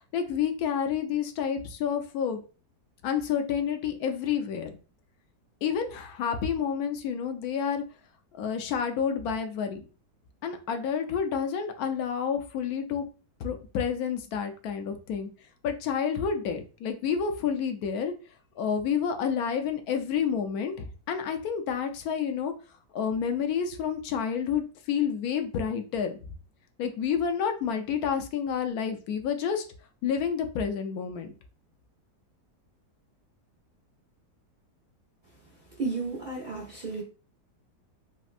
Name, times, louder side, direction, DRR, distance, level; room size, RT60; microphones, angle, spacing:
voice 1, 0.1-2.4 3.0-4.7 5.6-7.8 8.3-9.8 10.4-13.1 13.4-15.3 15.6-18.1 18.6-22.5 22.9-26.3 26.8-29.6 30.0-31.3, left 7 dB, 70° left, 1.0 m, -29 dB
voice 2, 35.8-37.0, right 4 dB, 80° right, 0.4 m, -32 dB
4.2 x 2.1 x 2.4 m
omnidirectional pair, 1.8 m